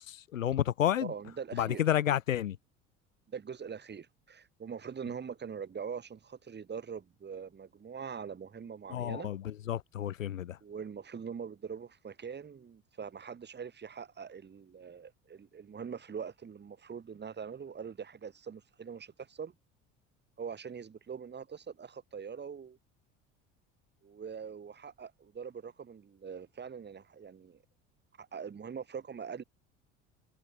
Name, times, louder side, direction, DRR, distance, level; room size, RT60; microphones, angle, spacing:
voice 1, 0.0-1.1 1.5-2.6 8.9-10.6, left 11 dB, 85° left, 1.0 m, -30 dB
voice 2, 1.0-1.8 3.3-9.3 10.6-19.5 20.4-22.8 24.0-27.6 28.2-29.4, right 6 dB, 25° right, 2.4 m, -43 dB
figure-of-eight pair, 65°, 38 cm